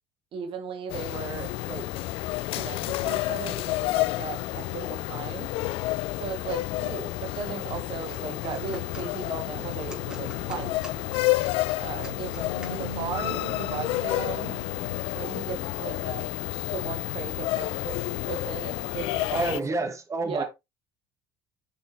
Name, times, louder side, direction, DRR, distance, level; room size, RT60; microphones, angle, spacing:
voice 1, 0.3-1.8 2.5-5.5 6.2-10.7 11.8-14.5 15.1-16.3 16.7-18.0 18.2-19.8 20.2-20.4, right 6 dB, 50° right, 1.6 m, -37 dB
sound 1, 0.9-19.6, left 18 dB, 55° left, 0.4 m, -30 dB
sound 2, 7.9-13.2, right 1 dB, 5° right, 3.5 m, -49 dB
sound 3, 8.6-11.7 12.0-16.0 16.7-18.3, left 2 dB, 90° left, 1.0 m, -43 dB
voice 2, 19.3-20.4, right 3 dB, 25° right, 1.7 m, -28 dB
8.4 x 6.1 x 2.9 m
figure-of-eight pair, 60°, 12 cm